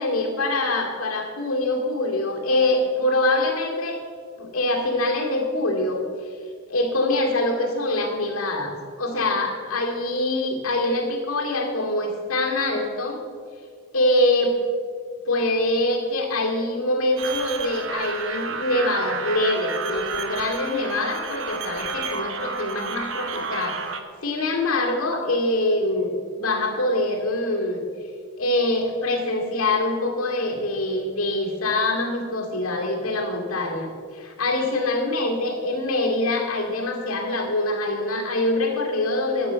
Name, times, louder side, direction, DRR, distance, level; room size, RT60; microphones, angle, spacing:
voice 1, 0.0-4.0 4.4-6.0 6.7-13.2 13.9-14.5 15.3-27.8 28.4-39.5, left 2 dB, 75° left, 0 dB, 2.4 m, -24 dB
sound 1, 17.2-24.0, right 5 dB, 60° right, 0.9 m, -31 dB
12.0 x 8.2 x 6.4 m, 2.1 s
head